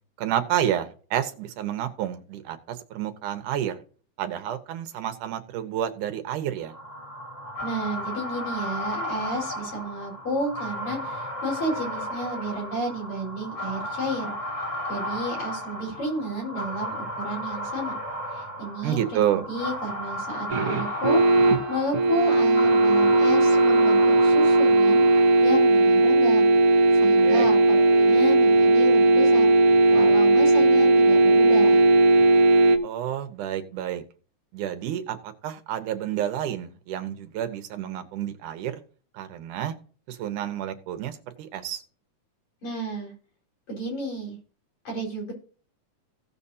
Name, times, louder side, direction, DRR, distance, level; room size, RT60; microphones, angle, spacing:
voice 1, 0.2-3.8 4.2-6.7 18.8-19.4 27.0-27.5 32.8-34.0 34.5-38.8 39.1-39.7 40.1-41.8, right 10 dB, 80° right, 9 dB, 2.5 m, -29 dB
sound 1, 6.7-25.6, equal, 15° left, 1.9 m, -34 dB
voice 2, 7.6-14.3 14.9-18.0 18.3-19.2 19.5-26.5 26.9-29.5 29.9-31.8 42.6-43.1 43.7-44.4 44.8-45.3, equal, 65° left, -1 dB, 5.8 m, -32 dB
sound 2, 20.5-32.8, right 2 dB, 55° right, 1.6 m, -18 dB
16.5 x 6.9 x 2.8 m, 0.41 s
omnidirectional pair, 3.6 m